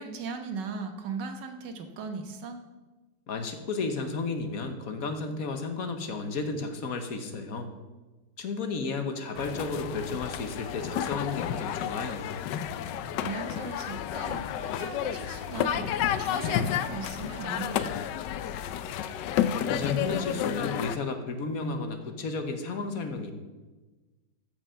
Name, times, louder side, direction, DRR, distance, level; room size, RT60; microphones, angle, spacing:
voice 1, 0.0-2.6 13.2-17.9, right 4 dB, 85° right, 6 dB, 1.8 m, -38 dB
voice 2, 3.3-7.7 8.4-12.4 19.7-23.3, left 4 dB, 60° left, 7 dB, 1.4 m, -33 dB
sound 1, 9.3-21.0, left 9 dB, 90° left, 1.3 m, -31 dB
14.0 x 6.1 x 5.6 m, 1.2 s
omnidirectional pair, 1.9 m